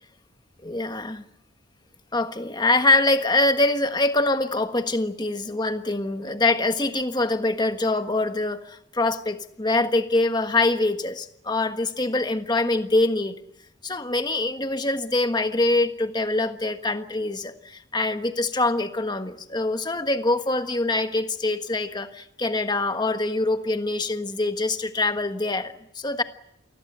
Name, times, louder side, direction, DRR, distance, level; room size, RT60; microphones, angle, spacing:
voice 1, 0.6-1.2 2.1-13.3 13.8-26.2, left 2 dB, 20° left, 8 dB, 1.4 m, -24 dB
28.5 x 20.5 x 8.1 m, 0.78 s
head